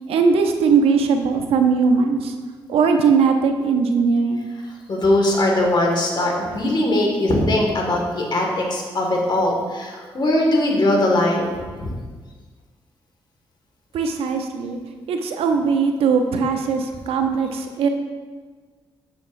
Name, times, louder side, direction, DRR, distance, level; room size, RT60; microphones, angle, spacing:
voice 1, 0.1-2.3 2.7-4.5 13.9-14.8 15.1-17.9, right 5 dB, 90° right, 5 dB, 0.6 m, -19 dB
voice 2, 4.9-11.5 11.8-11.9, left 1 dB, 50° left, 0 dB, 1.7 m, -20 dB
7.7 x 6.7 x 2.5 m, 1.5 s
cardioid pair, 65°, 10 cm